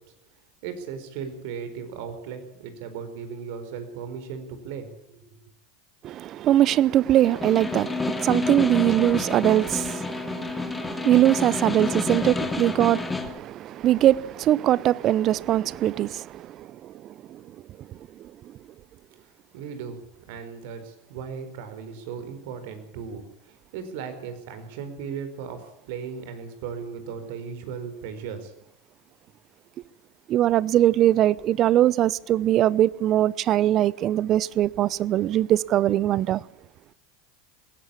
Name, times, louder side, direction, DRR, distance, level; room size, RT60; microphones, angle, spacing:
voice 1, 0.6-5.4 19.5-28.5, right 6 dB, 65° right, 4.7 m, -37 dB
voice 2, 6.0-18.3 30.3-36.4, right 12 dB, 45° right, 0.8 m, -22 dB
Snare drum, 7.2-13.4, left 3 dB, 10° left, 2.5 m, -29 dB
21.0 x 17.5 x 8.5 m
hypercardioid pair, 95°, 0 cm